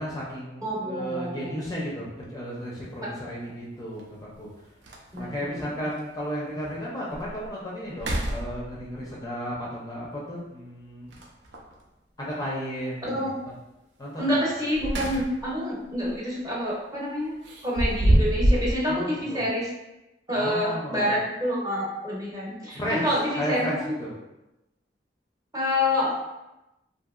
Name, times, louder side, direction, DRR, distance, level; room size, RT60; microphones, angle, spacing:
voice 1, 0.0-4.5 5.2-11.1 12.2-13.3 14.0-14.3 18.9-19.4 20.3-21.1 22.7-23.1 23.4-24.1, equal, 20° left, -5 dB, 0.4 m, -33 dB
voice 2, 0.6-1.6 5.1-5.8 13.0-13.3 14.2-17.4 17.6-19.7 20.3-23.9 25.5-26.2, left 1 dB, 20° right, -6 dB, 0.7 m, -27 dB
sound 1, 2.1-2.2 4.0-4.1 4.5-4.6 4.8-5.4 6.0-6.1 6.6-6.7 7.1-7.5 7.9-9.0 11.1-11.7 14.5-15.6 15.9-16.2 17.4-18.8, right 1 dB, 75° right, 0.4 m, -26 dB
2.7 x 2.6 x 2.4 m, 0.98 s
head